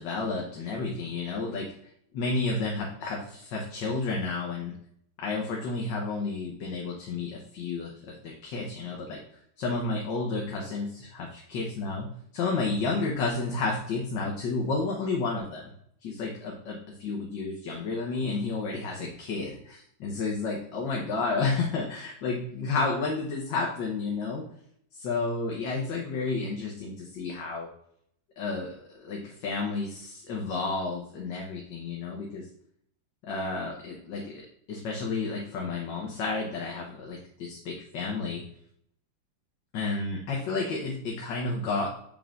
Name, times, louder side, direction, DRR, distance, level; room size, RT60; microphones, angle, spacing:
voice 1, 0.0-1.7 2.1-4.7 5.2-12.1 12.3-15.7 16.0-24.4 24.9-27.7 28.4-32.5 33.2-38.4 39.7-41.9, left 3 dB, 70° left, -1 dB, 1.6 m, -31 dB
7.3 x 5.4 x 2.5 m, 0.68 s
omnidirectional pair, 2.1 m